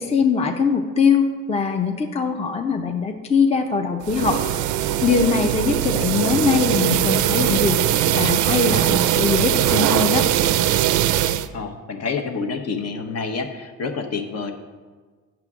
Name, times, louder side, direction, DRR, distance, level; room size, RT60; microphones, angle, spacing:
voice 1, 0.0-4.4 4.8-7.8 8.1-10.2, left 5 dB, 20° left, 5 dB, 0.6 m, -21 dB
sound 1, 4.0-11.5, right 12 dB, 75° right, 0.5 m, -20 dB
voice 2, 11.5-14.5, left 4 dB, 55° left, 5 dB, 1.0 m, -28 dB
8.7 x 6.0 x 3.6 m, 1.4 s
cardioid pair, 90°, 30 cm